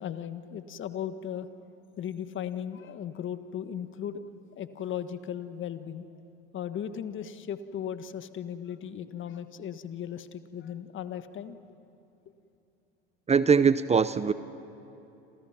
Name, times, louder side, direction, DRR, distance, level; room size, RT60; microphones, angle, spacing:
voice 1, 0.0-1.5 2.0-4.2 4.5-6.1 6.5-11.6, left 9 dB, 40° left, 11 dB, 1.5 m, -37 dB
voice 2, 13.3-14.3, right 6 dB, 20° right, 14 dB, 0.8 m, -22 dB
28.0 x 27.5 x 6.0 m, 2.8 s
hypercardioid pair, 75°, 30 cm